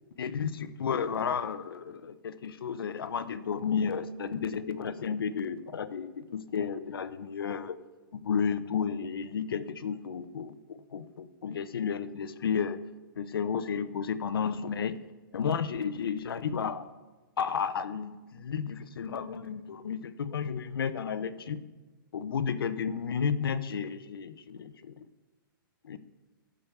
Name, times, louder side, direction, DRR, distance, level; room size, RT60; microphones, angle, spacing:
voice 1, 0.2-7.8 8.1-12.8 13.2-15.0 15.3-16.9 17.4-21.6 22.1-25.0 25.8-26.0, left 6 dB, 80° left, 13 dB, 0.8 m, -32 dB
14.5 x 5.2 x 6.8 m, 1.2 s
hypercardioid pair, 160°, 12 cm